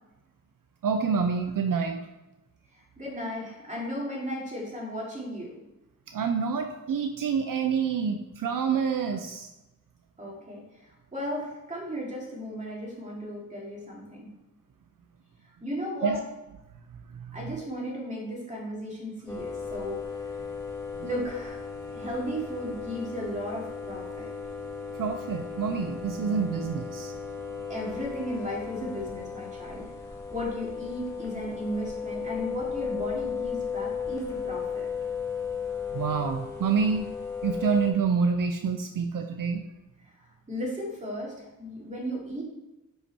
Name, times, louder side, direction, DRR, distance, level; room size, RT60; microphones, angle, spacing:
voice 1, 0.8-2.1 6.1-9.5 16.0-16.2 17.2-17.4 24.9-27.2 35.9-37.0 37.4-39.6, right 6 dB, 70° right, 6 dB, 0.6 m, -27 dB
voice 2, 3.0-5.6 10.2-14.3 15.6-16.2 17.3-20.3 21.0-21.6 21.9-24.3 27.7-29.9 30.3-34.9 40.0-42.4, equal, 20° right, -4 dB, 2.7 m, -35 dB
sound 1, 19.3-37.9, left 6 dB, 10° left, 1.8 m, -35 dB
9.8 x 5.7 x 4.3 m, 0.99 s
wide cardioid pair, 140°, 34 cm